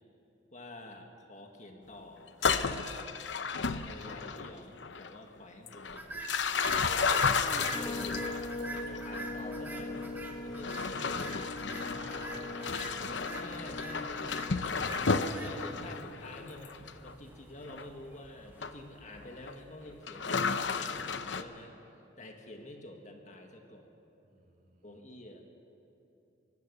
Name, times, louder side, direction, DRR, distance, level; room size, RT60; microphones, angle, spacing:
voice 1, 0.5-2.8 3.6-6.2 6.8-8.3 8.9-11.4 13.4-14.6 15.4-20.5 20.7-21.7 22.2-23.9 24.8-25.4, left 1 dB, 40° left, 3 dB, 1.8 m, -48 dB
sound 1, 2.3-4.5 4.8-5.2 5.7-9.2 9.9-10.1 10.5-17.1 17.7-17.9 18.6-18.7 19.2-19.5 20.1-21.4, left 5 dB, 75° left, 0.8 m, -33 dB
sound 2, 5.9-20.2, right 1 dB, 10° right, 1.3 m, -45 dB
sound 3, 7.7-16.0, left 2 dB, 20° left, 0.7 m, -41 dB
voice 2, 11.7-12.8 15.4-15.8 24.2-25.0, right 1 dB, 50° right, -1 dB, 3.4 m, -51 dB
23.5 x 17.5 x 6.9 m, 2.9 s
head